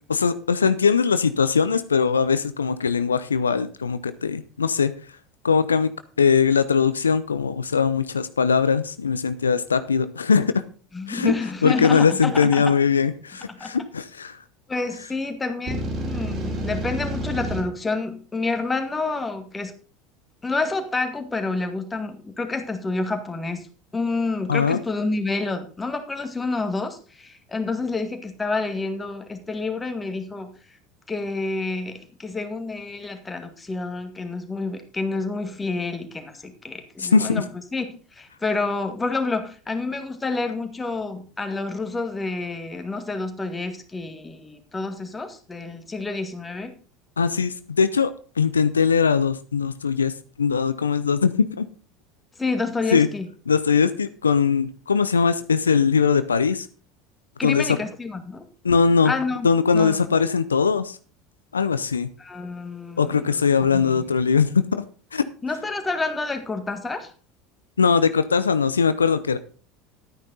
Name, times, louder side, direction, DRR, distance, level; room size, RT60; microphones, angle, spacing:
voice 1, 0.1-4.9 5.4-5.9 6.2-10.5 11.1-11.3 11.6-14.4 24.5-24.8 37.0-37.4 47.2-48.1 48.4-50.1 50.4-51.6 52.9-53.1 53.5-56.7 57.4-57.8 58.6-59.1 59.4-61.0 61.5-62.1 63.0-64.8 65.1-65.2 67.8-69.4, left 6 dB, 85° left, 12 dB, 0.5 m, -20 dB
voice 2, 10.9-12.6 13.5-13.7 14.7-19.7 20.4-23.7 23.9-30.5 31.1-37.9 38.2-46.7 52.4-53.3 57.4-58.5 59.0-59.5 59.7-60.1 62.2-63.5 63.7-64.0 65.4-67.1, left 3 dB, 15° left, 6 dB, 2.0 m, -28 dB
sound 1, 15.7-17.6, right 1 dB, 45° right, 4.1 m, -29 dB
11.5 x 9.4 x 4.1 m, 0.38 s
figure-of-eight pair, 75°, 0 cm